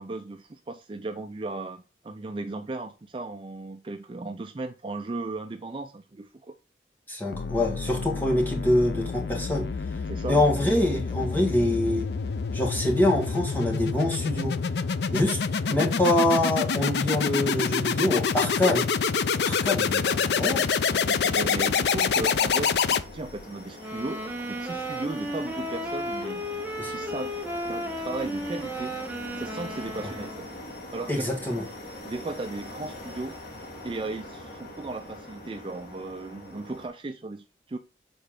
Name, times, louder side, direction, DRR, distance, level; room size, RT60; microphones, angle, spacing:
voice 1, 0.0-6.6 10.1-10.4 20.1-20.4 20.9-26.4 26.9-27.3 27.7-28.9 29.4-30.5 30.9-31.4 32.0-33.4 33.8-37.8, right 2 dB, 30° right, 0.4 m, -36 dB
voice 2, 7.1-9.7 10.3-12.1 12.5-14.6 15.1-15.4 15.7-18.8 19.4-20.8 26.8-26.9 31.1-31.6, left 1 dB, 10° left, 1.6 m, -25 dB
sound 1, 7.3-23.4, left 5 dB, 75° left, 0.5 m, -27 dB
sound 2, 20.4-36.9, left 1 dB, 60° left, 2.7 m, -43 dB
sound 3, 23.7-30.6, equal, 10° right, 1.0 m, -34 dB
6.9 x 4.2 x 3.6 m
head